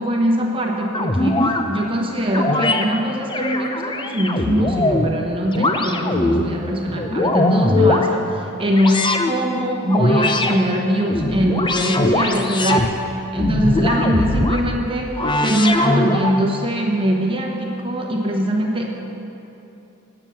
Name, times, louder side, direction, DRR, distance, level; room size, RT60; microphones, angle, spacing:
voice 1, 0.0-13.0 13.3-18.9, equal, 25° right, 0 dB, 1.0 m, -22 dB
sound 1, 0.9-1.6 2.3-2.8 3.3-5.1 5.5-6.4 6.9-8.1 8.7-9.3 9.9-10.6 11.0-12.9 13.4-14.6 15.2-16.4, left 2 dB, 20° left, 0.6 m, -20 dB
8.8 x 7.6 x 8.4 m, 3.0 s
head